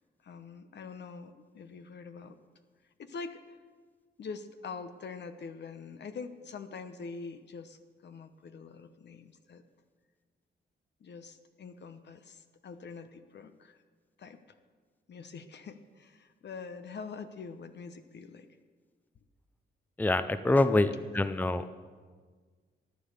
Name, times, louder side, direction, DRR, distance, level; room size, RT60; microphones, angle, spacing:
voice 1, 0.2-2.4 3.0-3.6 4.2-9.6 11.0-13.8 14.2-14.4 15.1-18.5 20.4-20.8 21.6-21.7, left 5 dB, 65° left, 9 dB, 1.0 m, -44 dB
voice 2, 20.0-20.9 21.1-21.6, left 2 dB, 10° left, 12 dB, 0.6 m, -25 dB
14.0 x 9.4 x 6.7 m, 1.5 s
cardioid pair, 75°, 20 cm